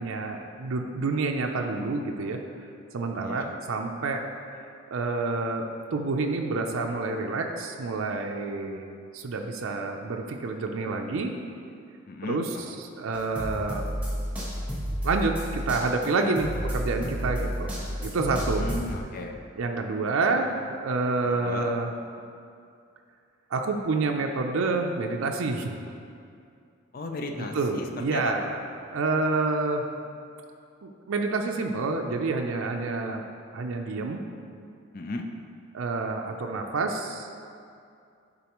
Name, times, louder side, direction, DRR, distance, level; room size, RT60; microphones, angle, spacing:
voice 1, 0.0-2.4 2.9-4.2 4.9-5.6 5.9-8.8 9.1-11.3 12.2-13.8 15.0-17.7 18.0-18.8 19.6-21.9 23.5-25.8 27.3-28.6 28.9-29.8 30.8-33.3 33.5-34.2 35.7-37.3, right 3 dB, 85° right, 2 dB, 0.5 m, -28 dB
voice 2, 12.1-12.8 18.6-19.4 21.2-21.7 26.9-27.9 28.1-28.5 34.9-35.2, left 2 dB, 45° left, 3 dB, 0.4 m, -35 dB
sound 1, 13.1-19.0, equal, 5° right, 1.1 m, -31 dB
10.5 x 4.0 x 3.0 m, 2.4 s
head